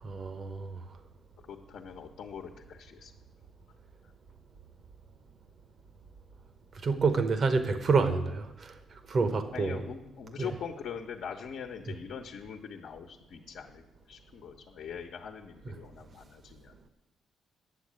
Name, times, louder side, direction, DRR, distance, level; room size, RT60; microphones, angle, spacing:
voice 1, 0.0-0.8 6.8-8.8 9.1-9.9 10.4-10.5 11.9-12.0 15.6-15.8, right 4 dB, 45° right, 1.1 m, -28 dB
voice 2, 1.5-3.1 9.5-16.7, left 7 dB, 65° left, 1.1 m, -42 dB
10.0 x 7.4 x 8.8 m
cardioid pair, 90°, 0 cm